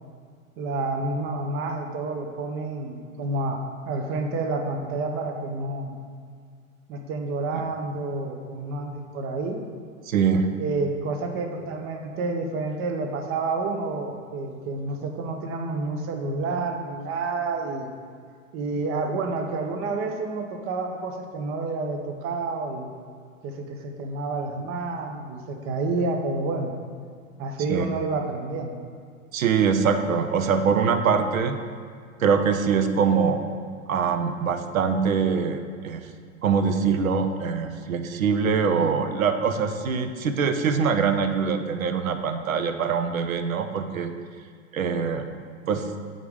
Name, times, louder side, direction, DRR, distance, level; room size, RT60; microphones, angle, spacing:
voice 1, 0.6-5.9 6.9-9.6 10.6-17.9 18.5-22.9 23.4-26.7 27.4-28.8, right 3 dB, 35° right, 4 dB, 0.7 m, -29 dB
voice 2, 10.1-10.5 27.7-27.9 29.3-31.6 32.2-33.4 33.9-35.6 35.8-36.0 36.4-44.1 44.7-45.3 45.7-45.9, right 6 dB, 85° right, 8 dB, 0.6 m, -23 dB
7.6 x 3.7 x 3.5 m, 2.1 s
hypercardioid pair, 95°, 40 cm